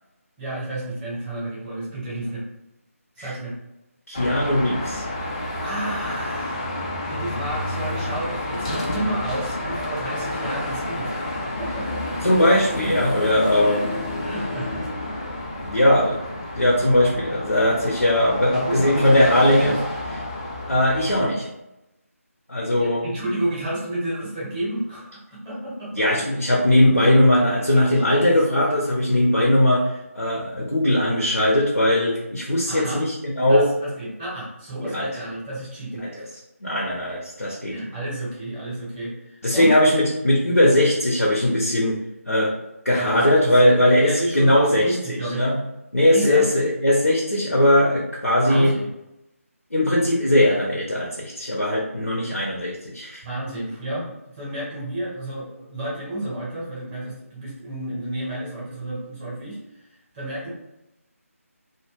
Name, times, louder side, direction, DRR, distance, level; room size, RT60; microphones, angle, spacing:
voice 1, 0.4-2.4 3.2-3.6 5.6-12.3 13.6-13.8 14.2-14.8 18.5-19.8 22.8-26.0 27.7-28.2 32.7-33.0 33.5-36.3 37.7-39.7 43.0-45.4 46.1-46.5 48.4-48.8 53.2-60.5, right 1 dB, 10° right, -6 dB, 0.7 m, -31 dB
voice 2, 4.1-5.0 12.2-13.9 15.6-16.2 16.5-19.8 20.7-21.5 22.5-23.0 25.9-33.7 34.8-35.1 36.0-36.2 36.6-37.7 39.4-42.0 42.3-42.5 42.8-45.6 45.9-48.7 49.7-53.2, left 1 dB, 85° left, -3 dB, 0.6 m, -19 dB
Car passing by / Traffic noise roadway noise / Engine, 4.1-21.3, left 1 dB, 25° left, 0.3 m, -30 dB
2.1 x 2.1 x 3.2 m, 0.92 s
figure-of-eight pair, 155°, 8 cm